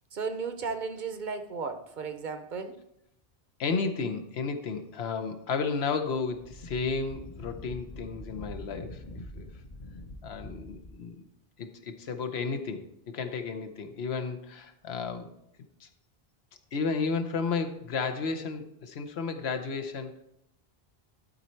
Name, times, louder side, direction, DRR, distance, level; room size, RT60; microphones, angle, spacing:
voice 1, 0.1-2.8, right 5 dB, 55° right, 9 dB, 0.7 m, -35 dB
voice 2, 3.6-9.0 9.3-9.5 10.2-11.2 11.6-15.3 15.8-15.9 16.7-20.2, left 4 dB, 85° left, 8 dB, 1.1 m, -33 dB
Wind, 6.3-11.0, left 1 dB, 45° left, 0.9 m, -44 dB
12.0 x 4.2 x 4.4 m, 0.79 s
omnidirectional pair, 1.0 m